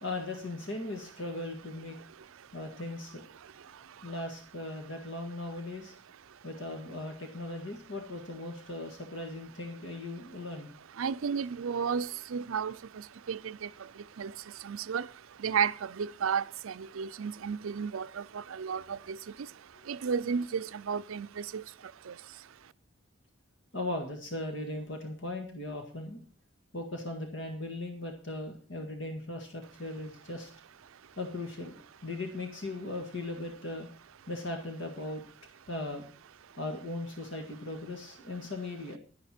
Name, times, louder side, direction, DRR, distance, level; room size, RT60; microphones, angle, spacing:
voice 1, 0.0-2.0 2.5-3.2 4.0-5.9 6.4-10.7 19.8-19.9 23.7-26.2 26.7-30.5 31.2-33.9 34.3-35.2 35.7-36.1 36.6-39.0, left 2 dB, 60° left, 1.8 m, -38 dB
voice 2, 11.0-12.8 13.3-13.7 14.2-14.3 14.6-15.1 15.4-19.2 19.9-21.6 22.1-22.2, right 6 dB, 80° right, 0.5 m, -32 dB
11.0 x 11.0 x 4.4 m
head